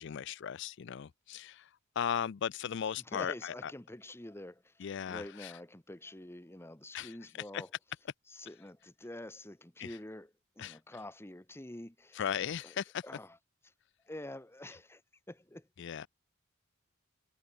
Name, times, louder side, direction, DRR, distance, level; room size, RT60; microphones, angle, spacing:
voice 1, 0.0-3.7 4.8-5.6 6.9-7.2 7.5-7.6 9.8-10.0 10.6-10.8 12.1-13.0 15.8-16.1, left 8 dB, 60° left, 0.4 m, -37 dB
voice 2, 3.1-7.7 8.3-10.3 10.6-12.2 12.6-12.7 13.0-13.3 14.0-15.0 15.3-15.7, left 1 dB, 10° left, 1.2 m, -47 dB
head